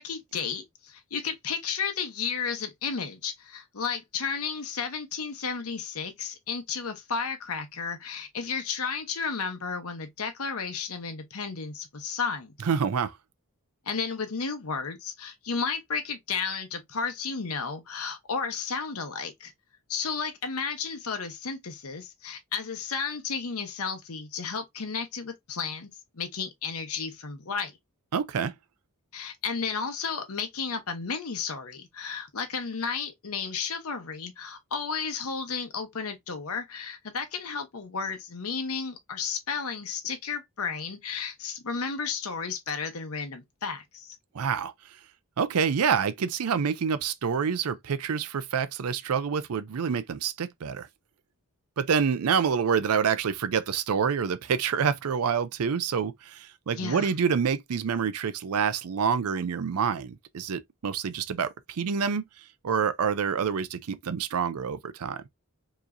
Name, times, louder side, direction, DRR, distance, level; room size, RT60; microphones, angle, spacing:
voice 1, 0.0-12.5 13.9-19.5 19.9-25.9 26.1-27.8 29.1-44.2 56.8-57.1, left 5 dB, 75° left, 0.9 m, -33 dB
voice 2, 12.6-13.1 28.1-28.5 44.3-44.7 45.4-50.9 51.8-62.2 62.6-65.2, right 6 dB, 80° right, 0.5 m, -27 dB
4.8 x 3.0 x 2.5 m
head